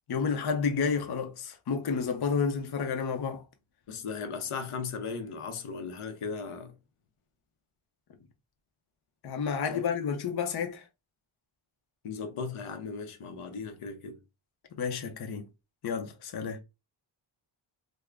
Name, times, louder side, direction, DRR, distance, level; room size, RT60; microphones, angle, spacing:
voice 1, 0.1-3.4 9.2-10.8 14.7-15.5 15.8-16.6, left 6 dB, 50° left, 0.6 m, -30 dB
voice 2, 3.9-6.7 9.7-9.8 12.0-14.2, left 5 dB, 80° left, 0.8 m, -37 dB
3.6 x 2.0 x 3.3 m
wide cardioid pair, 115°, 50 cm